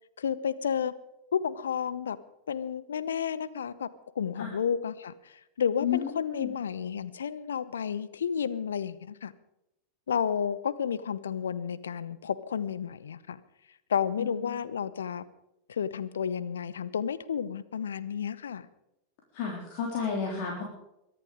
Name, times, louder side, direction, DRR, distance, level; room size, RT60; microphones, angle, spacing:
voice 1, 0.2-0.9 1.3-2.2 2.5-3.9 4.1-9.3 10.1-13.4 13.9-15.2 15.7-18.7, left 7 dB, 65° left, 16 dB, 0.9 m, -31 dB
voice 2, 5.8-6.5 14.2-14.5 19.3-20.6, left 7 dB, 50° left, -1 dB, 3.6 m, -32 dB
23.0 x 11.0 x 5.1 m, 0.87 s
figure-of-eight pair, 90°, 0 cm